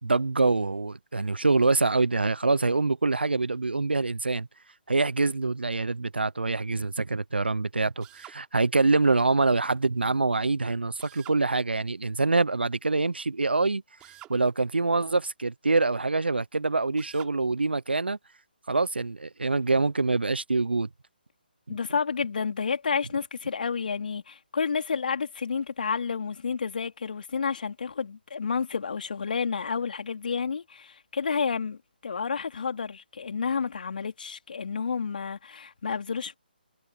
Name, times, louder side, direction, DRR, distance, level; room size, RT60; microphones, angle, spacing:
voice 1, 0.0-4.5 4.9-13.8 14.3-18.2 18.7-20.9 21.7-21.8, right 3 dB, 85° right, 0.9 m, -25 dB
Drill, 8.0-8.4 11.0-11.4 14.0-14.4 17.0-17.4, right 15 dB, 15° right, 4.4 m, -48 dB
voice 2, 21.7-36.3, left 5 dB, 60° left, 3.5 m, -30 dB
figure-of-eight pair, 150°, 5 cm